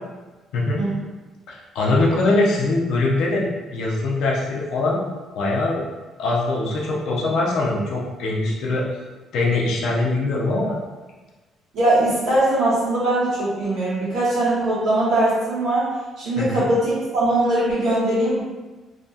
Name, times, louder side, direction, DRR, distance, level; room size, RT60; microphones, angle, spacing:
voice 1, 1.5-5.1 5.3-5.8 6.2-8.9 9.3-10.8 16.4-16.6, left 2 dB, 75° left, -3 dB, 0.6 m, -22 dB
voice 2, 11.7-15.9 16.2-18.4, right 1 dB, 65° right, -9 dB, 1.3 m, -21 dB
2.8 x 2.2 x 2.7 m, 1.2 s
cardioid pair, 170°, 0 cm